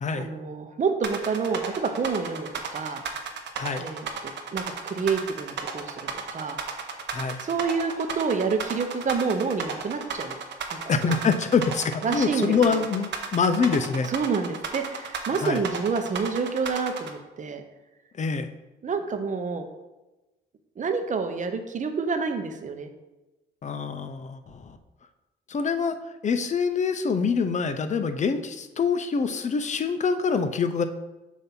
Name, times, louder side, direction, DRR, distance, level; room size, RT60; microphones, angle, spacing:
voice 1, 0.1-3.0 3.8-6.6 7.4-10.3 10.7-11.2 12.0-12.8 14.1-17.6 18.8-19.7 20.8-22.9, right 5 dB, 40° right, 7 dB, 0.8 m, -28 dB
sound 1, 1.0-17.1, right 6 dB, 65° right, 0.9 m, -33 dB
voice 2, 10.9-14.1 15.3-15.6 18.2-18.5 23.6-24.8 25.5-26.0 26.2-30.8, left 5 dB, 35° left, 9 dB, 0.6 m, -25 dB
7.1 x 2.8 x 5.9 m, 1.1 s
cardioid pair, 90°, 20 cm